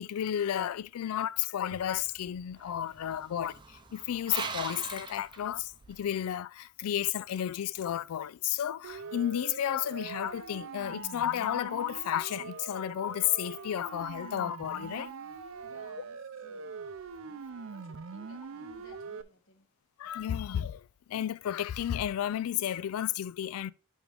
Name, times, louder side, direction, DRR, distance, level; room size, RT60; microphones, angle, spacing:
voice 1, 0.0-15.1 20.0-23.7, left 10 dB, 85° left, 0.3 m, -32 dB
sound 1, 1.7-6.1, right 5 dB, 20° right, 0.6 m, -42 dB
Siren, 8.8-19.2, right 5 dB, 65° right, 0.5 m, -43 dB
voice 2, 15.6-16.8 17.2-19.7, left 1 dB, 60° left, 1.5 m, -58 dB
10.0 x 3.7 x 3.4 m
head